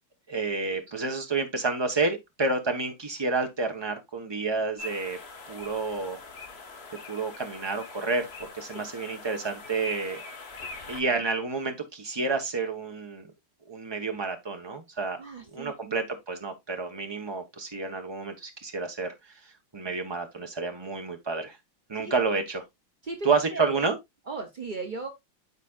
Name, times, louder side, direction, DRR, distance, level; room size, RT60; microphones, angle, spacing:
voice 1, 0.3-5.2 5.5-6.2 7.1-10.2 10.9-13.3 13.7-15.2 15.5-19.1 19.7-21.6 21.9-22.6 23.2-24.0, right 4 dB, 20° right, 0.7 m, -29 dB
sound 1, 4.8-11.0, left 3 dB, 35° left, 1.2 m, -42 dB
voice 2, 15.2-16.0 22.0-22.1 23.0-23.9 24.3-25.1, right 3 dB, 70° right, 0.4 m, -37 dB
12.5 x 4.2 x 2.4 m
omnidirectional pair, 2.2 m